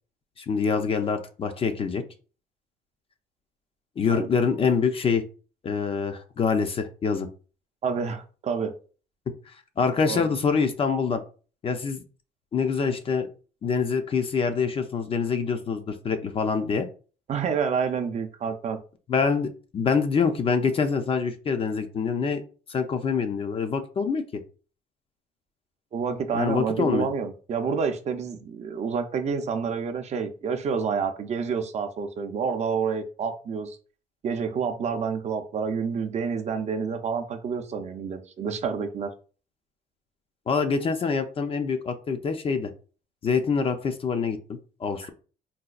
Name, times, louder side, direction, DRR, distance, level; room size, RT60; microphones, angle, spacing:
voice 1, 0.4-2.0 4.0-5.2 5.6-7.3 9.8-11.2 11.6-12.0 12.5-13.3 13.6-16.9 19.1-19.5 19.7-22.4 22.7-24.4 26.3-27.1 40.5-42.7 43.2-45.0, left 5 dB, 35° left, 8 dB, 0.5 m, -25 dB
voice 2, 7.8-8.7 10.1-10.3 17.3-18.8 25.9-33.8 34.2-39.1 45.0-45.1, right 6 dB, 40° right, 6 dB, 0.5 m, -28 dB
4.0 x 2.2 x 2.4 m, 0.37 s
cardioid pair, 110°, 17 cm